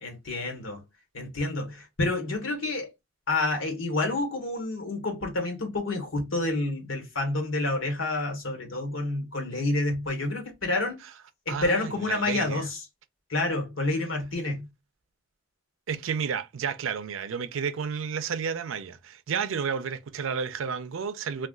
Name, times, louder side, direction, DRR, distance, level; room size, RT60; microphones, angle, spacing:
voice 1, 0.0-0.8 1.1-2.9 3.3-11.0 11.5-12.8 13.3-14.7, left 2 dB, 85° left, 1.2 m, -29 dB
voice 2, 11.5-12.7 15.9-21.5, right 6 dB, 85° right, 0.4 m, -31 dB
2.3 x 2.3 x 3.6 m
head